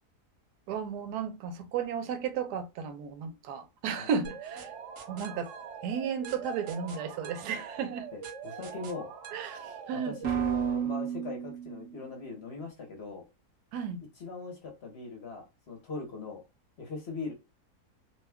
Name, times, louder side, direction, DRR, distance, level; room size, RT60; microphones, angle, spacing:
voice 1, 0.7-4.7 5.1-5.5 5.8-8.1 9.3-10.2 13.7-14.0, right 7 dB, 90° right, 1.1 m, -34 dB
sound 1, 4.2-12.0, right 8 dB, 60° right, 0.8 m, -37 dB
voice 2, 8.1-9.1 9.9-13.2 14.2-16.4 16.8-17.3, left 3 dB, 50° left, 1.0 m, -40 dB
2.8 x 2.2 x 3.4 m
omnidirectional pair, 1.7 m